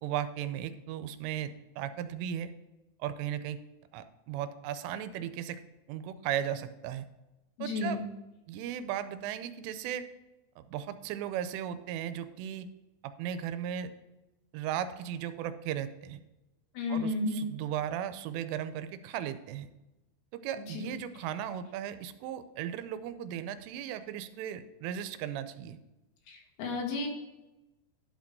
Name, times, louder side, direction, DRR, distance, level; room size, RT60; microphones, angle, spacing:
voice 1, 0.0-2.5 3.0-3.6 3.9-5.6 5.9-7.1 7.6-8.0 8.5-10.1 10.6-12.7 13.0-13.9 14.5-16.2 16.9-19.7 20.3-25.8, right 10 dB, 85° right, 11 dB, 3.1 m, -36 dB
voice 2, 7.6-8.0 16.8-17.5 20.7-20.9 26.3-27.1, left 3 dB, 75° left, 0 dB, 4.2 m, -32 dB
11.5 x 5.1 x 5.3 m, 1.0 s
omnidirectional pair, 5.6 m